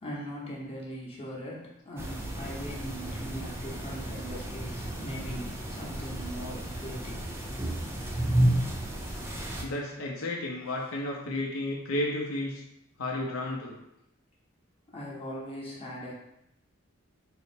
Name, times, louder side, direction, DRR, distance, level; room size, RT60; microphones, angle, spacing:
voice 1, 0.0-7.2 14.9-16.1, equal, 30° left, -5 dB, 0.8 m, -40 dB
sound 1, 2.0-9.6, right 1 dB, 10° right, 0.4 m, -32 dB
voice 2, 9.6-12.6 13.0-13.8, left 1 dB, 85° left, -1 dB, 0.6 m, -32 dB
4.0 x 2.0 x 4.2 m, 0.81 s
head